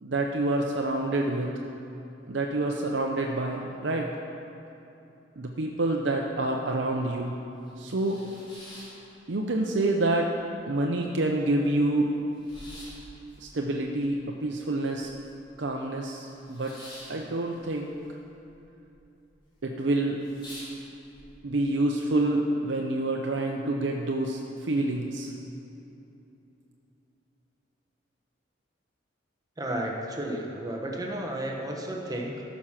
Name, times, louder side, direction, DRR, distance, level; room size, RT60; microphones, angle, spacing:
voice 1, 0.0-1.5 2.3-4.1 5.4-7.3 7.8-8.2 9.3-10.3 10.7-12.2 13.4-15.1 15.6-16.7 17.1-18.0 19.6-20.2 21.4-25.3, right 2 dB, 65° right, 1 dB, 0.7 m, -27 dB
sound 1, 7.7-9.7 10.0-10.7 11.1-11.2 11.3-15.5 15.8-18.6 18.8-19.4 19.8-19.9 20.2-21.2, equal, 25° left, 2.8 m, -48 dB
voice 2, 29.6-32.4, right 1 dB, 20° right, 0 dB, 1.0 m, -33 dB
14.5 x 6.3 x 5.8 m, 2.9 s
head